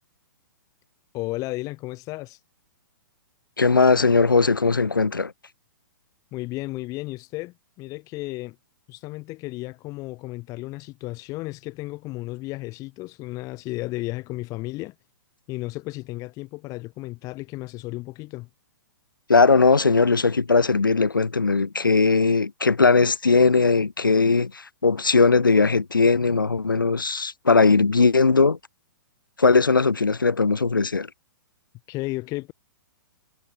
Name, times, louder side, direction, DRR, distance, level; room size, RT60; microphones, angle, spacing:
voice 1, 1.1-2.4 6.3-8.6 8.9-14.9 15.5-18.5 31.9-32.5, left 20 dB, 30° left, 2.1 m, -33 dB
voice 2, 3.6-5.3 19.3-28.6 29.4-31.1, left 4 dB, 90° left, 2.4 m, -19 dB
hypercardioid pair, 120°, 11 cm